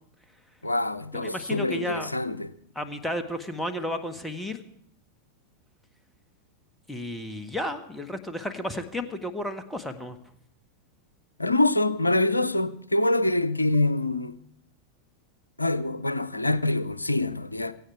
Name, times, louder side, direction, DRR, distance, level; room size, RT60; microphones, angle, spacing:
voice 1, 0.6-2.5 11.4-14.4 15.6-17.7, left 2 dB, 85° left, 0.7 m, -25 dB
voice 2, 1.1-2.1 2.7-4.6 6.9-10.2, left 1 dB, 5° left, 1.5 m, -32 dB
17.0 x 16.0 x 4.8 m
figure-of-eight pair, 90°, 0 cm